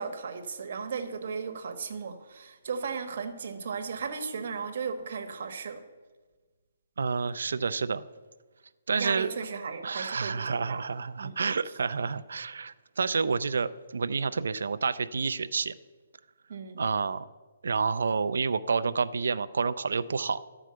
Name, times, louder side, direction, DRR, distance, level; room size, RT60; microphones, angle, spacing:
voice 1, 0.0-5.8 9.0-10.8 11.2-11.4 16.5-16.8, right 5 dB, 55° right, 6 dB, 1.3 m, -36 dB
voice 2, 7.0-8.0 8.9-9.3 9.8-15.7 16.8-17.2 17.6-20.4, right 5 dB, 80° right, 13 dB, 0.5 m, -29 dB
12.0 x 4.9 x 7.7 m, 1.3 s
hypercardioid pair, 160°, 0 cm